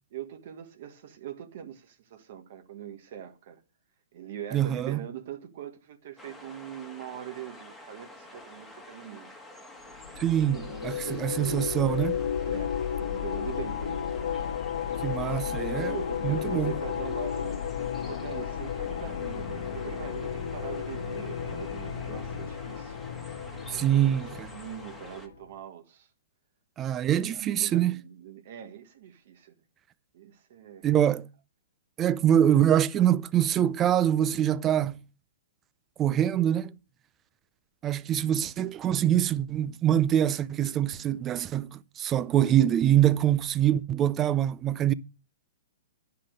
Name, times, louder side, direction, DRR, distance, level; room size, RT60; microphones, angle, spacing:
voice 1, 0.1-3.6 4.1-9.3 10.6-11.6 12.4-14.2 14.9-17.6 18.1-23.0 23.7-24.2 24.5-26.1 27.1-29.5 30.1-30.8, right 10 dB, 55° right, 1.5 m, -42 dB
voice 2, 4.5-5.1 10.2-12.2 15.0-16.0 16.2-16.8 23.7-24.5 26.8-27.9 30.8-31.3 32.0-35.0 36.0-36.7 37.8-44.9, right 10 dB, 20° right, 0.5 m, -24 dB
sound 1, 6.2-25.3, left 1 dB, ahead, 1.5 m, -48 dB
sound 2, 9.9-25.3, left 8 dB, 75° left, 1.4 m, -33 dB
10.5 x 5.7 x 6.5 m
hypercardioid pair, 140°, 0 cm